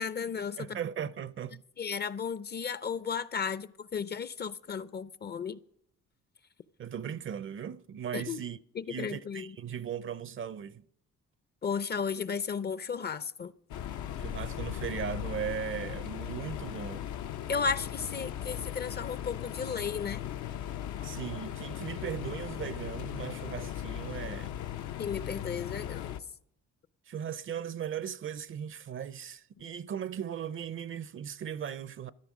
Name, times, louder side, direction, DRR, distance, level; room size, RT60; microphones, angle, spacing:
voice 1, 0.0-0.8 1.8-5.6 8.1-8.4 8.7-9.6 11.6-13.5 17.5-20.3 25.0-26.2, left 6 dB, 35° left, 0.5 m, -34 dB
voice 2, 0.6-1.6 6.8-8.6 8.9-10.8 14.2-17.0 21.0-24.6 27.1-32.1, right 8 dB, 45° right, 0.5 m, -38 dB
sound 1, 13.7-26.2, left 10 dB, 75° left, 0.7 m, -38 dB
13.5 x 10.0 x 6.2 m
cardioid pair, 90°, 30 cm